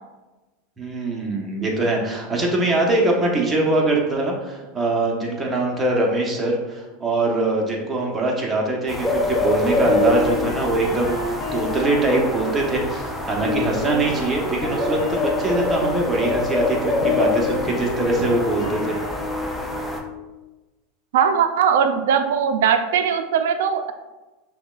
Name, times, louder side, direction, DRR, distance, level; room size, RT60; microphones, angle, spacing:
voice 1, 0.8-11.2 11.5-19.0, right 2 dB, 20° right, -1 dB, 0.9 m, -22 dB
sound 1, 8.9-20.0, left 2 dB, 5° left, 0.5 m, -26 dB
sound 2, 9.8-20.0, left 2 dB, 85° left, 1.1 m, -30 dB
voice 2, 21.1-23.9, right 7 dB, 80° right, 8 dB, 0.4 m, -19 dB
5.9 x 2.3 x 2.4 m, 1.1 s
supercardioid pair, 115°, 0 cm